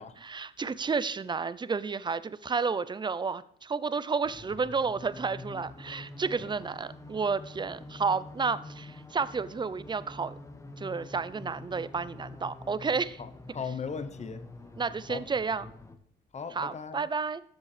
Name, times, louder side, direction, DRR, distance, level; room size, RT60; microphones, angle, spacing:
voice 1, 0.2-10.3 10.8-13.2 14.8-15.7 16.5-17.4, right 5 dB, 25° right, 0.6 m, -31 dB
sound 1, 4.2-16.0, left 2 dB, 15° left, 1.1 m, -46 dB
voice 2, 13.2-14.4 15.1-15.2 16.3-17.1, left 5 dB, 35° left, 0.9 m, -38 dB
13.0 x 7.2 x 3.3 m
cardioid pair, 90°, 20 cm